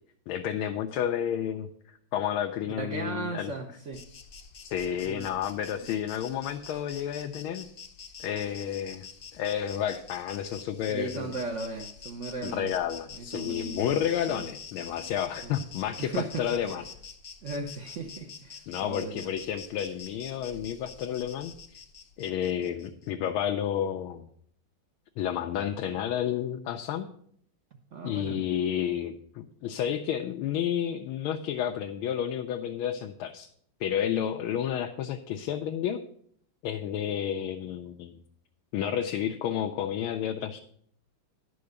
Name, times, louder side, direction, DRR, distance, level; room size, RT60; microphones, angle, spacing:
voice 1, 0.3-1.7 2.1-3.5 4.6-7.7 8.2-9.1 9.3-11.4 12.4-16.8 18.7-21.5 22.2-24.3 25.2-27.1 28.0-33.5 33.8-36.0 36.6-38.2 38.7-40.6, left 9 dB, 90° left, 4 dB, 1.5 m, -31 dB
voice 2, 2.6-4.0 5.0-5.3 5.8-5.9 10.9-12.7 13.1-14.5 15.4-15.5 16.0-16.8 17.4-19.3 27.9-28.4, right 3 dB, 55° right, 3 dB, 0.8 m, -37 dB
Insect, 3.9-23.1, left 6 dB, 55° left, 0.6 m, -46 dB
11.0 x 4.8 x 6.4 m, 0.62 s
omnidirectional pair, 2.2 m